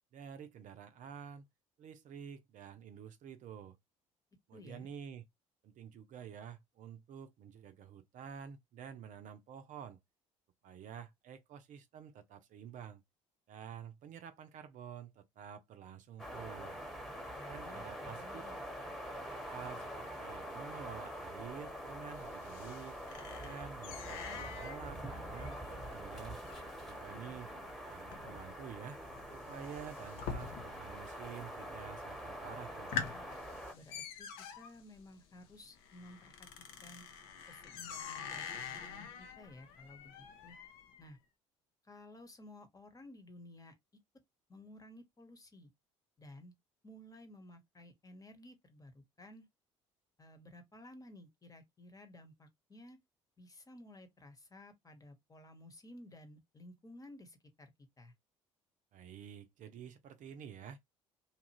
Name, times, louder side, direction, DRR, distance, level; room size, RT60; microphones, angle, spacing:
voice 1, 0.1-1.5 1.8-3.8 4.5-5.2 5.6-10.0 10.6-13.0 13.5-16.8 17.5-18.4 19.5-23.0 23.4-26.4 26.8-27.5 27.9-29.0 29.3-32.9 58.9-60.8, right 8 dB, 50° right, 0.6 m, -49 dB
voice 2, 4.5-4.9 17.4-18.6 33.7-34.3 34.6-36.5 36.8-37.0 37.5-40.6 41.0-41.2 41.8-43.8 44.5-45.7 46.2-46.5 46.8-49.4 50.2-53.0 53.4-57.7 58.0-58.1, left 1 dB, 20° left, 1.2 m, -55 dB
sound 1, 16.2-33.7, equal, ahead, 1.3 m, -45 dB
sound 2, 21.4-31.0 31.3-31.9 32.3-32.4 32.7-41.0, left 6 dB, 65° left, 0.8 m, -46 dB
2.9 x 2.5 x 3.0 m
hypercardioid pair, 55°, 16 cm